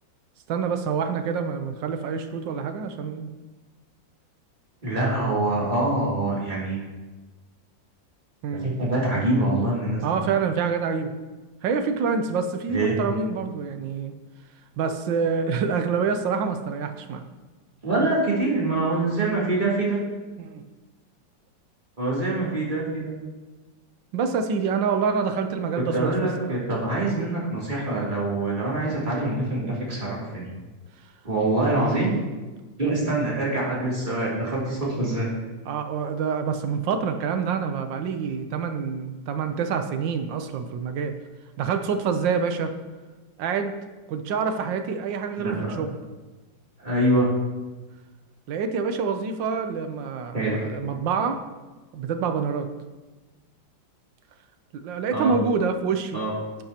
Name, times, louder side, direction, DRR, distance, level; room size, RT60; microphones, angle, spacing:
voice 1, 0.5-3.3 8.4-8.7 10.0-11.1 11.6-14.1 14.8-17.3 20.4-20.6 24.1-26.6 35.7-41.1 41.6-42.7 43.4-43.7 44.1-45.9 48.5-51.4 51.9-52.7 54.7-56.2, right 5 dB, 80° right, 8 dB, 1.5 m, -26 dB
voice 2, 4.8-6.8 8.5-10.0 12.7-12.9 17.8-20.0 22.0-23.2 25.9-30.5 31.2-32.1 32.8-35.3 45.4-45.8 46.8-47.3 50.3-50.6 55.1-55.3 56.1-56.3, right 2 dB, 25° right, -6 dB, 3.0 m, -25 dB
11.0 x 10.5 x 2.9 m, 1.2 s
omnidirectional pair, 2.0 m